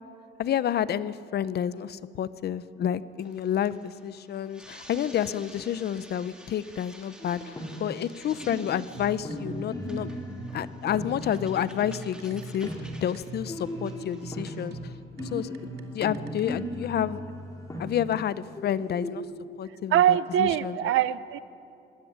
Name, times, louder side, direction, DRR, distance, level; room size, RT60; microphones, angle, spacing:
voice 1, 0.4-10.1 10.5-12.7 13.0-14.9 15.3-17.2 17.8-19.2 19.6-20.9, left 9 dB, 55° left, 16 dB, 0.8 m, -30 dB
sound 1, 3.2-14.7, right 1 dB, 5° right, 3.2 m, -52 dB
sound 2, 7.2-8.0 8.3-12.8 13.5-19.1, left 1 dB, 15° left, 4.2 m, -38 dB
sound 3, 8.9-16.5, right 3 dB, 55° right, 2.4 m, -41 dB
voice 2, 19.9-21.4, right 11 dB, 85° right, 16 dB, 0.9 m, -23 dB
25.0 x 20.5 x 9.5 m, 2.6 s
cardioid pair, 135°, 20 cm